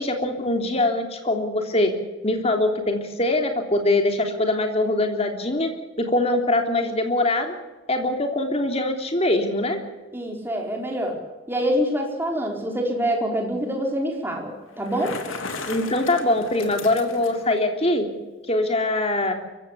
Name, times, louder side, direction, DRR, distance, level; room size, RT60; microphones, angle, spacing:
voice 1, 0.0-1.9 2.2-5.7 6.0-7.5 7.9-9.8 15.7-18.1 18.5-19.3, left 2 dB, 30° left, 4 dB, 3.4 m, -23 dB
voice 2, 10.1-11.2 11.5-15.2, equal, 10° right, 1 dB, 4.6 m, -25 dB
Bicycle, 14.7-17.5, left 4 dB, 80° left, 3.3 m, -36 dB
24.0 x 15.5 x 8.5 m, 1.2 s
head